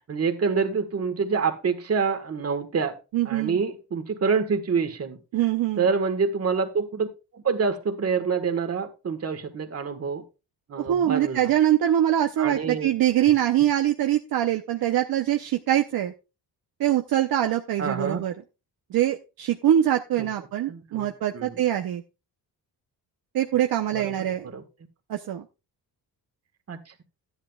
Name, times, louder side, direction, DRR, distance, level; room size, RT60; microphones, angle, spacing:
voice 1, 0.0-3.0 3.2-5.2 5.8-7.1 7.3-10.2 10.7-11.5 12.4-12.9 17.8-18.2 20.2-20.3 20.7-21.6 23.9-24.6 26.7-26.8, right 5 dB, 40° right, 8 dB, 1.5 m, -27 dB
voice 2, 3.1-3.6 5.3-5.8 10.8-16.1 16.8-18.3 18.9-22.0 23.3-24.5 25.1-25.4, right 11 dB, 60° right, 5 dB, 0.7 m, -23 dB
13.0 x 10.5 x 2.3 m, 0.29 s
cardioid pair, 140°, 40 cm